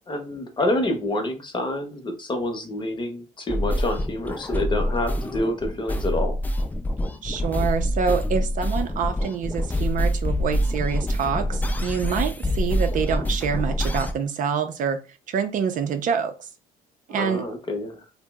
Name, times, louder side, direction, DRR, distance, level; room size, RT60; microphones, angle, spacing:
voice 1, 0.1-6.4 17.2-18.0, left 1 dB, 25° left, 5 dB, 0.8 m, -27 dB
sound 1, 3.5-14.1, equal, 10° left, 0.4 m, -26 dB
voice 2, 7.2-15.0 15.3-16.5 17.1-17.4, right 7 dB, 50° right, 7 dB, 0.5 m, -26 dB
2.7 x 2.0 x 3.4 m, 0.33 s
cardioid pair, 110°, 17 cm